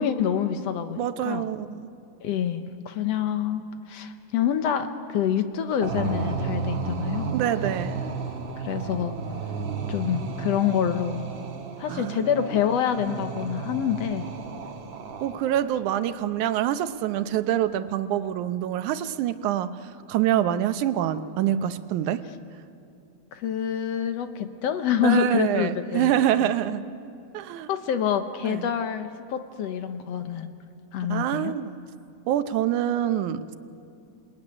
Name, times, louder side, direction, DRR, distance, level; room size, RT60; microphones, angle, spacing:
voice 1, 0.0-1.4 2.2-7.4 8.6-9.2 9.9-11.2 11.8-14.3 23.3-26.2 27.7-30.5 30.9-31.6, left 9 dB, 65° left, 8 dB, 1.9 m, -27 dB
voice 2, 1.0-1.9 7.3-8.0 11.9-12.6 13.1-13.2 15.2-19.8 20.1-22.2 25.0-26.8 27.3-27.7 28.4-28.7 31.1-31.8 32.3-33.6, right 11 dB, 90° right, 11 dB, 2.3 m, -26 dB
sound 1, 5.8-15.7, right 5 dB, 50° right, 2.0 m, -33 dB
27.5 x 19.0 x 9.8 m, 2.5 s
omnidirectional pair, 3.4 m